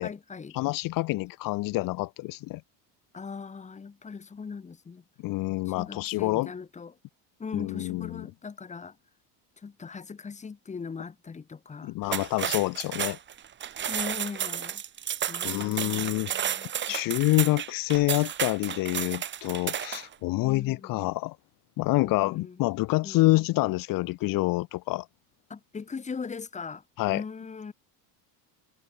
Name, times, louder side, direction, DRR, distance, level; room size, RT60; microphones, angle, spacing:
voice 1, 0.0-0.6 3.1-5.0 5.6-7.0 7.4-9.0 9.6-11.9 13.9-14.8 15.3-16.7 20.4-21.1 22.0-22.6 23.0-23.5 25.5-27.7, left 5 dB, 15° left, 4.4 m, -40 dB
voice 2, 0.5-2.6 5.2-6.5 7.5-8.2 11.8-13.2 15.4-16.6 16.9-21.4 21.8-25.1 27.0-27.2, left 20 dB, 50° left, 1.2 m, -27 dB
sound 1, 12.0-20.1, right 9 dB, 25° right, 1.5 m, -32 dB
cardioid pair, 175°, 43 cm